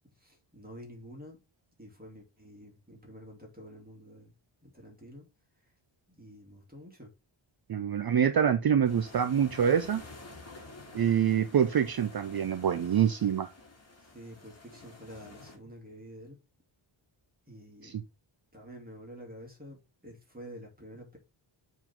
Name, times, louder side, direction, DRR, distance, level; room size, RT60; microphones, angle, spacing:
voice 1, 0.2-1.4 1.8-4.3 4.6-5.3 6.1-7.1 14.1-16.4 17.5-18.0 18.5-19.8 20.0-21.2, equal, 20° right, 2.7 m, -48 dB
voice 2, 7.7-10.0 10.9-13.5 17.8-18.0, right 8 dB, 50° right, 0.6 m, -26 dB
sound 1, 8.8-15.6, left 2 dB, 30° left, 2.7 m, -50 dB
7.0 x 4.0 x 5.8 m
wide cardioid pair, 175°, 50 cm